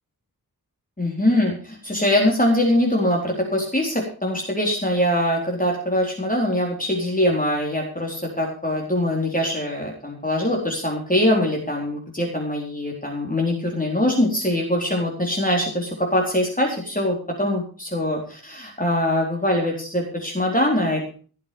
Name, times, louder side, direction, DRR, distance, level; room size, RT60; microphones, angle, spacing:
voice 1, 1.0-21.1, left 1 dB, 20° left, -1 dB, 4.1 m, -23 dB
17.0 x 7.6 x 7.0 m, 0.40 s
wide cardioid pair, 65°, 36 cm